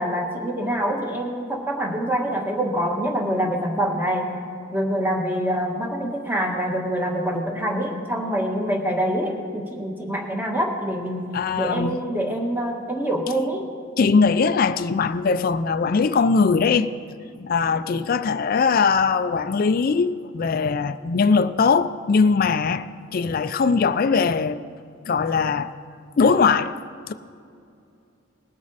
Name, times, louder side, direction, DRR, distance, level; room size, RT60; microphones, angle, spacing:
voice 1, 0.0-4.3 4.7-11.2 11.5-13.6, equal, 10° right, 1.4 m, -25 dB
voice 2, 11.3-12.0 14.0-16.9 17.4-22.9 23.1-24.6 25.1-25.7 26.2-26.7, left 5 dB, 45° left, 0.4 m, -20 dB
19.5 x 8.4 x 4.0 m
head